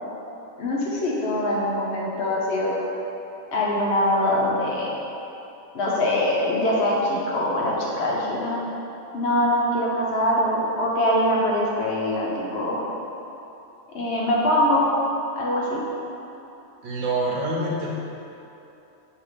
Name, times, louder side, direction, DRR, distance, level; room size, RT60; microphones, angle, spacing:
voice 1, 0.6-2.8 3.5-4.9 5.7-8.6 9.1-12.8 13.9-14.9 15.4-15.8, left 1 dB, 65° left, -4 dB, 0.9 m, -23 dB
voice 2, 16.8-17.9, right 2 dB, 75° right, -3 dB, 1.1 m, -26 dB
5.4 x 2.8 x 3.3 m, 2.9 s
omnidirectional pair, 1.3 m